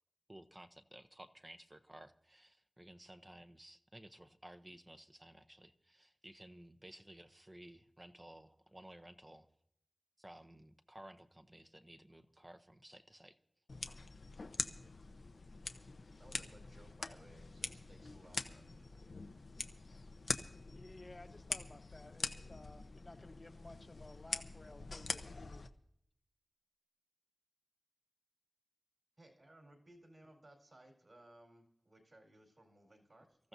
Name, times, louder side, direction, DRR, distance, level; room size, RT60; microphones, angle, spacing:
voice 1, 0.3-9.5 10.2-13.4, right 1 dB, 20° right, 8 dB, 0.8 m, -56 dB
sound 1, 13.7-25.7, left 3 dB, 85° left, 0.8 m, -44 dB
voice 2, 16.1-19.1 29.2-33.4, right 1 dB, 55° right, 1 dB, 4.4 m, -61 dB
voice 3, 20.7-25.6, left 2 dB, 35° left, 7 dB, 1.1 m, -56 dB
25.0 x 14.5 x 2.7 m, 0.73 s
wide cardioid pair, 80°, 0 cm